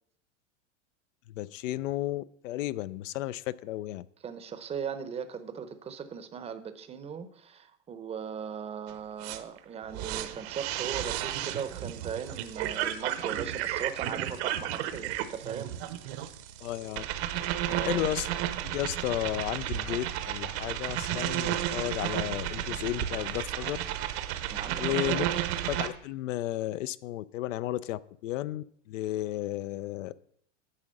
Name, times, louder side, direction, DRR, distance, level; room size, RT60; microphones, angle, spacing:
voice 1, 1.3-4.1 16.6-17.1 17.8-18.3 18.6-23.8 24.8-25.3 25.7-30.1, left 15 dB, 85° left, 17 dB, 0.5 m, -33 dB
voice 2, 4.2-16.2 17.7-18.0 24.5-25.2, right 7 dB, 15° right, 11 dB, 0.6 m, -38 dB
sound 1, 8.9-9.0 9.2-25.9, right 12 dB, 60° right, 0.8 m, -33 dB
10.0 x 3.7 x 6.4 m, 0.66 s
supercardioid pair, 130°, 37 cm